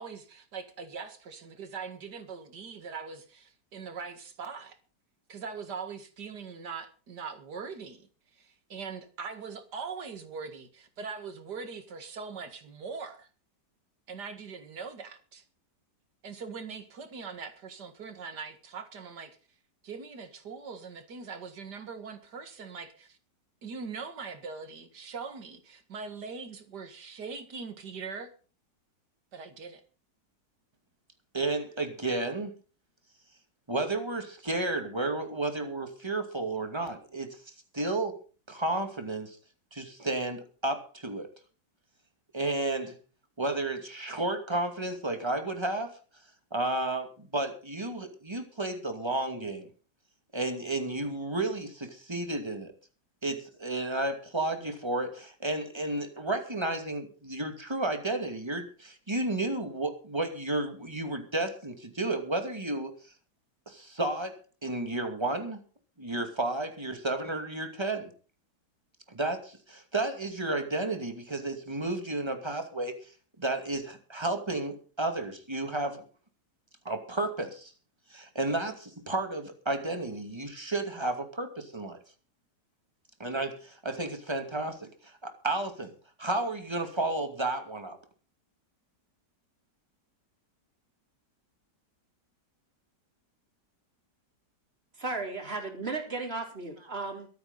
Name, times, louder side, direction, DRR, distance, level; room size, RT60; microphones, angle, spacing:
voice 1, 0.0-4.8 5.3-8.1 8.3-13.3 14.1-15.4 16.2-19.4 19.8-23.2 23.6-28.3 29.3-29.8, right 5 dB, 70° right, 2.4 m, -41 dB
voice 2, 31.3-32.5 33.7-37.4 37.7-38.2 38.5-39.4 39.7-41.3 42.3-42.9 43.4-45.9 46.5-49.7 50.3-52.7 53.2-62.9 63.7-64.3 64.6-65.6 66.0-68.1 69.1-72.9 73.4-76.0 76.8-77.7 78.1-82.0 83.2-85.9 86.2-88.0, right 2 dB, 15° right, 2.4 m, -32 dB
voice 3, 95.0-97.3, right 3 dB, 35° right, 3.9 m, -35 dB
23.0 x 9.4 x 4.0 m
omnidirectional pair, 1.9 m